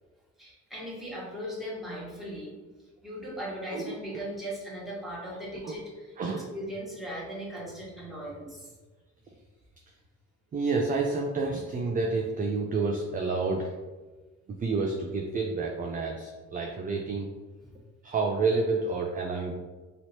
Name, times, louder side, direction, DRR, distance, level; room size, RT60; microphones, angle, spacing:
voice 1, 0.4-2.6 3.0-8.7 17.6-17.7, equal, ahead, -7 dB, 1.3 m, -38 dB
voice 2, 3.7-4.2 5.6-5.7 6.2-6.5 10.5-13.7 14.6-17.3 18.0-19.5, right 3 dB, 30° right, 1 dB, 0.4 m, -29 dB
3.0 x 2.9 x 2.8 m, 1.3 s
cardioid pair, 90°, 30 cm